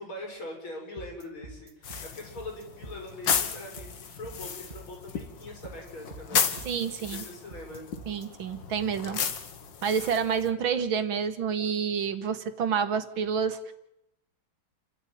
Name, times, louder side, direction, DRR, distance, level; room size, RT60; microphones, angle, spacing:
voice 1, 0.0-6.5 7.0-7.9, left 1 dB, 85° left, 1 dB, 7.0 m, -42 dB
sound 1, 1.0-8.3, right 3 dB, 25° right, 2.2 m, -46 dB
sound 2, 1.8-10.5, left 7 dB, 65° left, 2.1 m, -34 dB
voice 2, 6.7-7.2 8.1-9.2 9.8-13.7, right 6 dB, 75° right, 9 dB, 2.3 m, -28 dB
29.0 x 13.0 x 9.2 m, 0.84 s
omnidirectional pair, 2.2 m